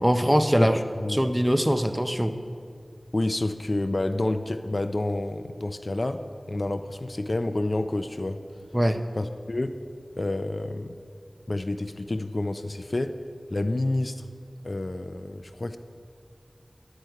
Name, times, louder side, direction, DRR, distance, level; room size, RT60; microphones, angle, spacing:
voice 1, 0.0-0.8 1.1-2.3 8.7-9.0, equal, 10° right, 8 dB, 0.5 m, -22 dB
voice 2, 0.6-1.2 3.1-8.4 9.2-9.8 10.2-11.0 11.5-13.2 13.5-14.2 14.6-15.8, left 2 dB, 55° left, 9 dB, 0.4 m, -29 dB
11.0 x 7.8 x 4.5 m, 2.3 s
wide cardioid pair, 55°, 0 cm